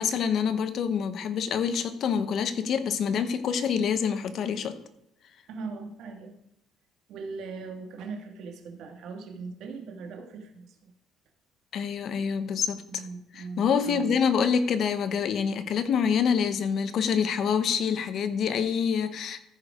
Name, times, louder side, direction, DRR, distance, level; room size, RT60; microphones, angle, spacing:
voice 1, 0.0-4.8 11.7-13.0 13.3-19.4, left 7 dB, 50° left, 11 dB, 0.8 m, -26 dB
voice 2, 5.5-6.4 7.1-10.9 12.9-14.2, right 4 dB, 65° right, 4 dB, 1.6 m, -40 dB
14.5 x 4.9 x 4.9 m, 0.80 s
cardioid pair, 145°, 0 cm